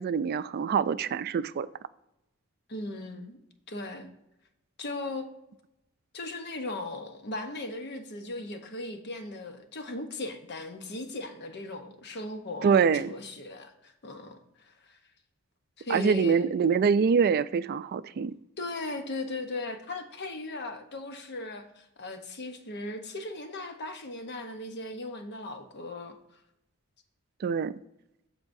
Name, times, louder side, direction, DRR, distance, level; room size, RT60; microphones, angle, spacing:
voice 1, 0.0-1.7 12.6-13.1 15.9-18.3 27.4-27.8, right 6 dB, 45° right, 0.3 m, -25 dB
voice 2, 2.7-3.4 3.7-4.1 4.8-5.3 6.1-15.0 15.8-16.5 18.6-26.2, left 2 dB, 55° left, 0.9 m, -38 dB
14.5 x 4.8 x 2.6 m
head